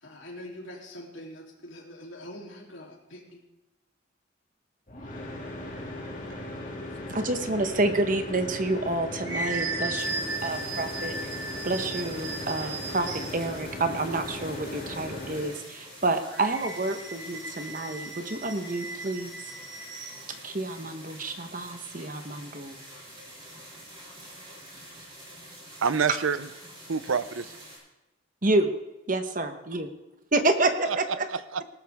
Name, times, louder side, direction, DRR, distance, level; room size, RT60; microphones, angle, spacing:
voice 1, 0.0-3.4, left 1 dB, 70° left, -2 dB, 3.3 m, -44 dB
sound 1, 4.9-15.5, left 1 dB, 40° left, 2.5 m, -38 dB
voice 2, 7.1-11.3 11.6-13.1 13.3-19.5 20.4-22.8 28.4-28.7 29.1-29.9 30.3-31.3, right 2 dB, 40° right, 7 dB, 1.1 m, -28 dB
sound 2, 8.8-13.5 16.2-20.2, right 2 dB, 65° right, 1.8 m, -36 dB
sound 3, 10.0-27.8, right 1 dB, 25° right, 6.2 m, -47 dB
voice 3, 25.8-26.5 26.9-27.6 30.9-31.0 31.3-31.6, right 6 dB, 85° right, 15 dB, 0.6 m, -27 dB
18.5 x 12.5 x 3.6 m, 1.0 s
head